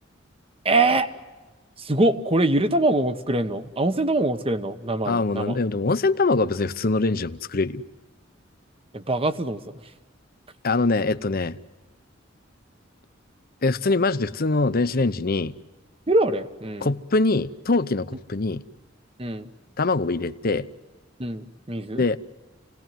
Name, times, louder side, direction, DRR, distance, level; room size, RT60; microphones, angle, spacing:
voice 1, 0.6-1.1 1.8-5.6 8.9-9.8 16.1-16.9 19.2-19.5 21.2-22.0, right 2 dB, 30° right, 1.2 m, -23 dB
voice 2, 5.1-7.8 10.6-11.6 13.6-15.5 16.8-18.6 19.8-20.7 22.0-22.2, left 3 dB, 50° left, 0.8 m, -23 dB
27.5 x 18.5 x 9.2 m
head